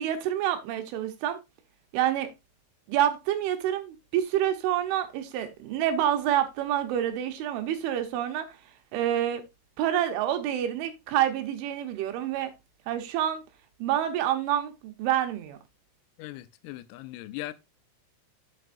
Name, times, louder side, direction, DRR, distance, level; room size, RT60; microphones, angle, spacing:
voice 1, 0.0-1.4 1.9-2.3 2.9-8.5 8.9-9.4 9.8-12.5 12.9-13.4 13.8-15.6, right 11 dB, 75° right, 3.2 m, -27 dB
voice 2, 16.2-17.5, left 17 dB, 90° left, 3.3 m, -39 dB
7.8 x 7.7 x 2.5 m
omnidirectional pair, 5.8 m